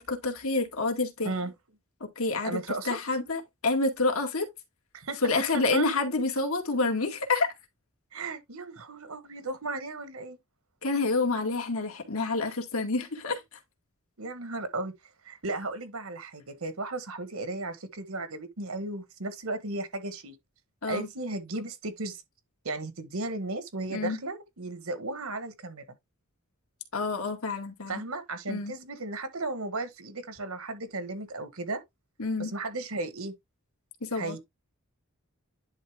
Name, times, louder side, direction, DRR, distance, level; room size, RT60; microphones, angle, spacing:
voice 1, 0.0-1.3 2.2-2.6 2.8-4.5 5.2-7.5 10.8-13.6 20.8-21.1 23.9-24.2 26.9-28.0 28.5-28.7 32.2-32.5 34.0-34.4, left 3 dB, 75° left, 2.1 m, -28 dB
voice 2, 2.4-3.0 4.9-5.2 5.5-5.9 8.1-10.4 14.2-14.9 15.2-20.3 20.9-22.2 22.6-25.8 27.9-31.8 32.4-33.3 34.1-34.4, right 2 dB, 75° right, 1.3 m, -35 dB
10.5 x 3.6 x 3.5 m
head